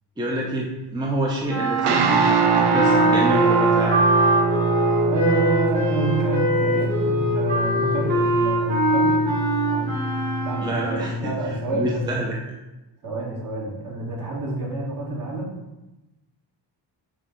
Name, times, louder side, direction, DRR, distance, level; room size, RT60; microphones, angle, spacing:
voice 1, 0.2-4.0 10.6-11.3 11.7-12.3, right 1 dB, 10° right, -2 dB, 0.5 m, -27 dB
sound 1, 1.5-11.0, right 1 dB, 85° right, 1.4 m, -23 dB
sound 2, 1.8-12.3, right 3 dB, 65° right, 0.6 m, -24 dB
voice 2, 5.1-9.2 9.7-10.0 10.4-12.0 13.0-15.6, right 3 dB, 45° right, -3 dB, 1.3 m, -29 dB
6.1 x 2.0 x 3.6 m, 1.0 s
cardioid pair, 90°, 44 cm